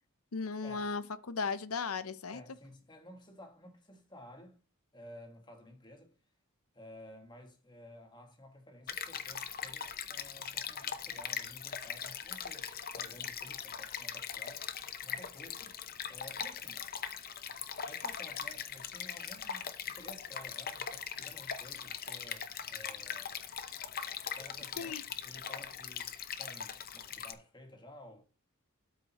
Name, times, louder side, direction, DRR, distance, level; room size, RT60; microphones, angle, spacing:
voice 1, 0.3-2.4 24.8-25.0, left 5 dB, 75° left, 0.7 m, -36 dB
voice 2, 2.3-4.6 4.9-6.1 6.7-14.7 15.0-15.8 16.1-16.9 17.8-23.4 24.3-25.0 25.2-28.2, left 1 dB, 20° left, 1.5 m, -54 dB
Stream, 8.9-27.3, left 7 dB, 45° left, 0.8 m, -41 dB
12.5 x 4.7 x 3.0 m
head